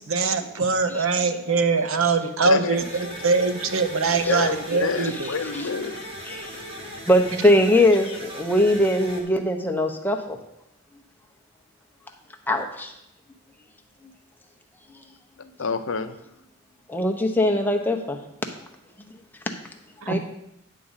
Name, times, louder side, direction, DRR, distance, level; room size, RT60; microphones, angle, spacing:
voice 1, 0.0-5.3 20.0-20.2, right 4 dB, 65° right, 9 dB, 0.7 m, -23 dB
voice 2, 2.4-2.8 4.3-5.9 6.3-6.7 15.6-16.2, left 5 dB, 60° left, 9 dB, 0.6 m, -28 dB
sound 1, 2.7-9.2, equal, 25° right, 1.4 m, -38 dB
voice 3, 7.1-10.4 12.5-12.9 14.9-15.0 16.9-18.2 20.1-20.2, left 1 dB, 10° left, 3 dB, 0.7 m, -21 dB
10.0 x 3.8 x 7.2 m, 0.82 s
head